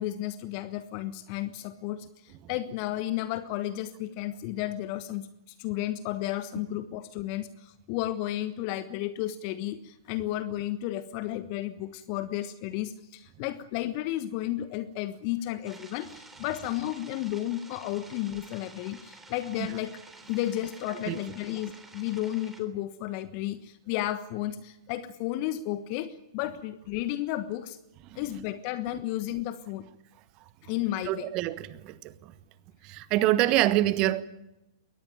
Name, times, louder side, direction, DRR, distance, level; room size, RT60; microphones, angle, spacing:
voice 1, 0.0-19.9 20.3-27.8 28.1-29.9 30.6-31.3, left 14 dB, 40° left, 1.3 m, -33 dB
sound 1, 15.7-22.6, right 3 dB, 10° right, 3.5 m, -51 dB
voice 2, 31.0-32.3 32.8-34.2, right 15 dB, 35° right, 1.3 m, -26 dB
22.5 x 18.5 x 9.2 m
figure-of-eight pair, 110°, 2 cm